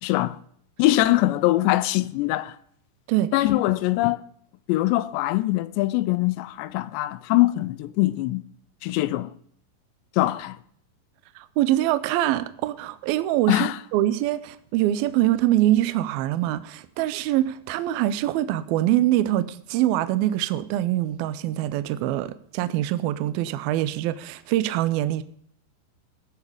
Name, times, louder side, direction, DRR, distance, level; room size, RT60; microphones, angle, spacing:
voice 1, 0.0-0.4 0.8-2.6 3.3-4.2 4.7-8.4 8.8-9.3 10.2-10.6 13.5-13.8, left 17 dB, 80° left, 2.7 m, -22 dB
voice 2, 11.4-25.2, right 14 dB, 85° right, 2.1 m, -24 dB
18.0 x 7.4 x 5.0 m
omnidirectional pair, 5.1 m